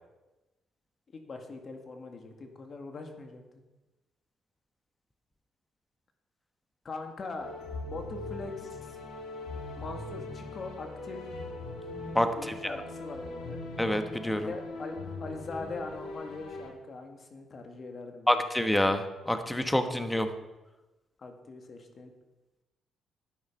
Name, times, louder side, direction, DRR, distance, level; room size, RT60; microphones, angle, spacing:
voice 1, 1.1-3.4 6.8-7.5 7.9-9.0 9.8-11.3 12.4-13.6 14.4-18.3 21.2-22.1, left 3 dB, 45° left, 4 dB, 2.0 m, -41 dB
sound 1, 7.4-16.7, left 2 dB, 90° left, 2.1 m, -40 dB
voice 2, 12.1-12.5 13.8-14.5 18.3-20.3, left 1 dB, 10° left, 8 dB, 1.2 m, -27 dB
12.0 x 9.4 x 5.4 m, 1.1 s
cardioid pair, 90°, 0 cm